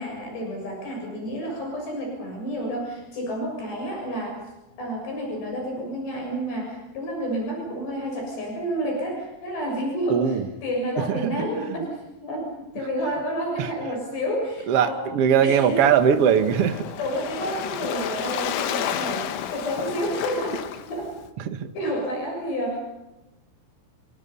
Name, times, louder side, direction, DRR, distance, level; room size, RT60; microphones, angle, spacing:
voice 1, 0.0-4.4 4.8-15.9 17.0-21.1 21.7-22.8, equal, 65° left, 0 dB, 9.0 m, -30 dB
voice 2, 10.1-10.5 11.1-11.2 13.6-13.7 14.7-16.9 21.5-21.7, right 8 dB, 75° right, 8 dB, 1.3 m, -20 dB
Waves surf, 15.6-21.3, left 9 dB, 80° left, 3.9 m, -31 dB
29.5 x 26.0 x 5.6 m, 0.97 s
omnidirectional pair, 5.3 m